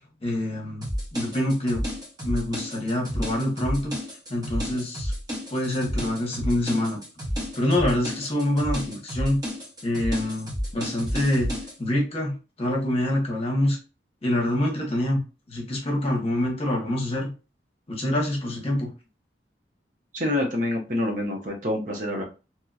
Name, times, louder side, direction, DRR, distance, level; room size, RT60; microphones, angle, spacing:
voice 1, 0.2-1.8 2.2-3.9 4.3-5.1 5.5-7.0 7.5-9.4 9.8-11.5 11.8-13.8 14.2-15.2 15.5-17.3 17.9-18.9, left 1 dB, 35° left, -1 dB, 0.9 m, -26 dB
sound 1, 0.8-11.7, equal, 20° right, 1.0 m, -31 dB
voice 2, 20.1-22.2, left 1 dB, 45° right, 1 dB, 0.8 m, -27 dB
2.9 x 2.8 x 2.3 m, 0.31 s
head